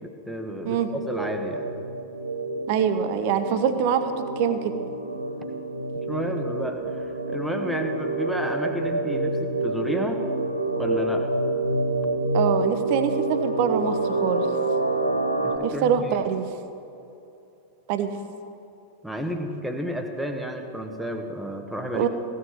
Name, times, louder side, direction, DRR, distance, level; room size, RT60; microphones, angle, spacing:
voice 1, 0.0-1.6 6.1-10.2 10.8-11.3 15.4-16.2 19.0-22.1, equal, ahead, 4 dB, 1.5 m, -31 dB
sound 1, 0.6-15.6, right 2 dB, 90° left, 1.1 m, -27 dB
voice 2, 2.7-4.7 12.3-14.5 15.6-16.5 17.9-18.1 21.9-22.1, right 8 dB, 45° right, 9 dB, 1.0 m, -24 dB
15.5 x 7.1 x 7.6 m, 2.7 s
figure-of-eight pair, 90°, 0 cm